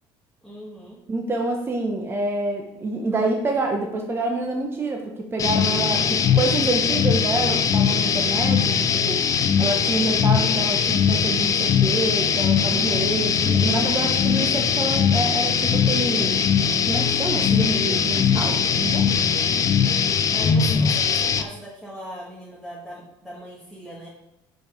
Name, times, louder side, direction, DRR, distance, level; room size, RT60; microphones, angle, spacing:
voice 1, 0.4-1.0 20.3-24.1, equal, ahead, -5 dB, 1.7 m, -39 dB
voice 2, 1.1-9.2 9.6-16.4 16.9-19.1, right 2 dB, 25° right, 2 dB, 1.0 m, -27 dB
sound 1, 5.4-21.4, left 7 dB, 35° left, 0.6 m, -21 dB
6.1 x 5.2 x 5.2 m, 0.87 s
cardioid pair, 120°, 10 cm